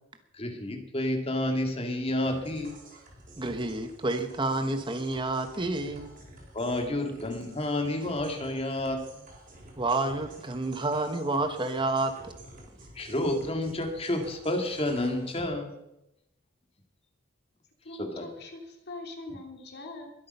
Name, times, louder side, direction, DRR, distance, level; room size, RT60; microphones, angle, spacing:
voice 1, 0.3-2.8 6.5-9.2 13.0-15.7 18.0-18.3, left 1 dB, 30° left, 4 dB, 2.1 m, -30 dB
sound 1, 2.2-15.5, right 1 dB, 45° right, 4.3 m, -51 dB
voice 2, 3.4-6.1 9.8-12.3, right 2 dB, 25° right, 7 dB, 1.1 m, -29 dB
voice 3, 17.8-20.1, left 2 dB, 55° left, 3 dB, 2.7 m, -42 dB
22.0 x 8.5 x 5.5 m, 0.87 s
head